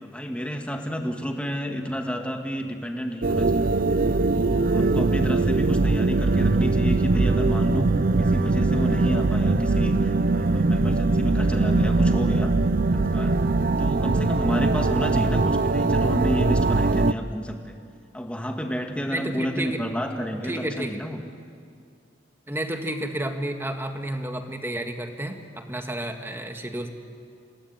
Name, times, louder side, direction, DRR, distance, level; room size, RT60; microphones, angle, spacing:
voice 1, 0.0-3.7 4.3-7.9 8.2-12.5 12.9-13.4 13.8-17.8 18.1-21.2, equal, 5° left, 3 dB, 2.0 m, -30 dB
sound 1, 3.2-17.1, right 3 dB, 50° right, 0.6 m, -21 dB
voice 2, 19.1-19.8 20.4-21.0 22.5-26.9, right 1 dB, 15° right, 5 dB, 1.8 m, -31 dB
28.5 x 18.5 x 9.6 m, 2.3 s
head